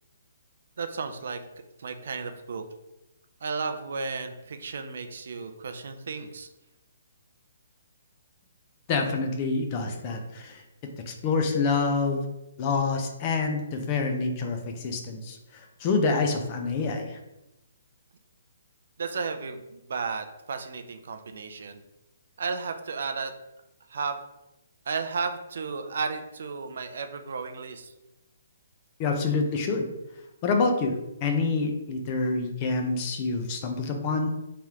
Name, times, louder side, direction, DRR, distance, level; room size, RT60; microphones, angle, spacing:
voice 1, 0.8-1.4 1.8-2.6 3.4-6.5 19.0-21.8 22.4-23.3 23.9-24.2 24.9-27.9, right 5 dB, 60° right, 8 dB, 0.4 m, -33 dB
voice 2, 8.9-10.6 11.1-12.3 12.6-15.4 15.8-17.2 29.0-29.9 30.4-34.3, left 4 dB, 25° left, 4 dB, 0.5 m, -27 dB
3.2 x 2.9 x 3.6 m, 0.93 s
hypercardioid pair, 165°, 0 cm